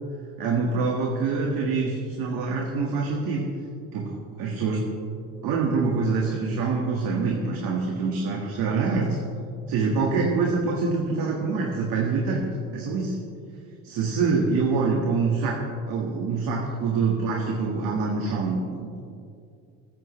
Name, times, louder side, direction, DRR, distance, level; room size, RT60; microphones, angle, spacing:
voice 1, 0.4-3.5 3.9-4.8 5.4-9.2 9.7-12.4 12.7-13.2 13.8-15.6 15.9-19.0, right 4 dB, 75° right, -1 dB, 1.9 m, -25 dB
22.0 x 9.2 x 3.3 m, 2.4 s
supercardioid pair, 90°, 36 cm